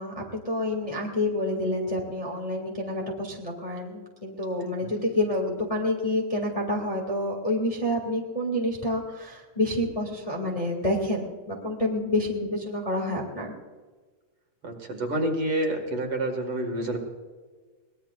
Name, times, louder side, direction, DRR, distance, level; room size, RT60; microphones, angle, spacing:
voice 1, 0.0-13.5, left 1 dB, 15° left, 0 dB, 1.7 m, -28 dB
voice 2, 14.6-17.0, right 1 dB, 50° right, 2 dB, 2.6 m, -28 dB
23.5 x 20.0 x 2.5 m, 1.4 s
omnidirectional pair, 3.7 m